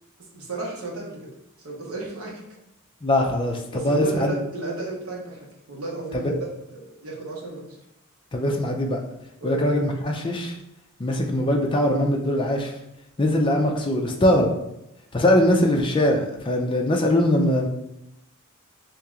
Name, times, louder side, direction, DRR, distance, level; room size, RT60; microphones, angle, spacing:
voice 1, 0.3-1.2 1.6-2.4 3.7-7.8 9.4-9.7, right 2 dB, 75° right, -2 dB, 1.0 m, -33 dB
voice 2, 3.0-4.4 6.1-6.3 8.3-9.0 9.4-10.5 11.0-12.7 13.2-14.5 15.1-17.7, left 1 dB, 25° left, 2 dB, 0.4 m, -21 dB
3.0 x 2.8 x 3.6 m, 0.83 s
head